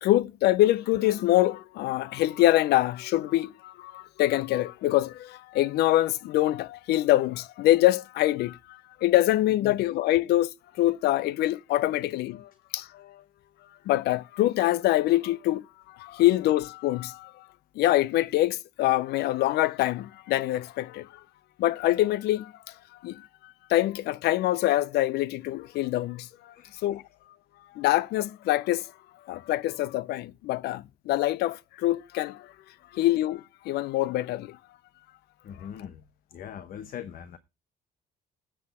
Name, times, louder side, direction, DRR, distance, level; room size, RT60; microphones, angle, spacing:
voice 1, 0.0-13.2 13.9-17.5 17.7-21.1 21.6-22.7 23.0-27.0 27.7-28.9 29.3-32.5 32.9-34.6, left 15 dB, 75° left, 0.5 m, -25 dB
voice 2, 26.5-26.9 35.4-36.0 36.3-37.4, left 9 dB, 55° left, 0.9 m, -41 dB
9.8 x 7.7 x 4.2 m
cardioid pair, 110°, 17 cm